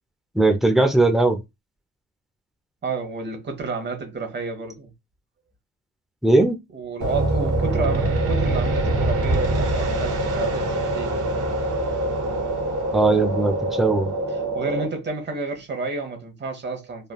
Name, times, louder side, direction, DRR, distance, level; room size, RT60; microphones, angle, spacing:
voice 1, 0.3-1.4 6.2-6.6 12.9-14.1, right 2 dB, ahead, 0.5 m, -18 dB
voice 2, 2.8-4.9 6.7-11.3 14.5-17.1, right 4 dB, 35° right, 1.0 m, -30 dB
sound 1, 7.0-14.9, right 2 dB, 55° right, 1.5 m, -24 dB
3.3 x 2.2 x 2.3 m
cardioid pair, 90°, 30 cm